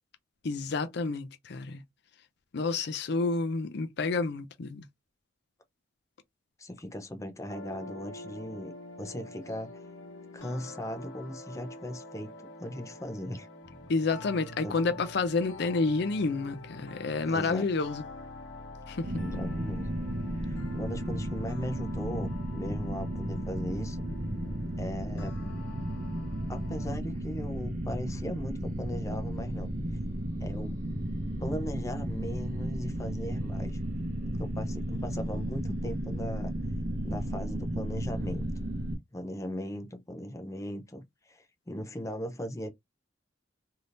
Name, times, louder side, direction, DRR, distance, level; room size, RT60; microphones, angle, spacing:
voice 1, 0.4-1.8 2.5-4.8 13.9-18.0 18.9-19.1, left 3 dB, 60° left, 0.5 m, -29 dB
voice 2, 6.6-9.8 10.3-12.3 12.6-13.5 14.6-14.8 17.3-17.7 19.2-19.9 20.3-24.0 24.8-25.4 26.5-29.7 30.4-30.8 31.4-33.8 34.4-36.6 37.0-38.5 39.1-42.7, left 1 dB, 15° left, 0.6 m, -38 dB
sound 1, 7.5-26.9, left 1 dB, 80° left, 1.0 m, -46 dB
sound 2, 19.0-39.0, right 1 dB, 45° right, 0.7 m, -34 dB
3.4 x 2.7 x 2.5 m
head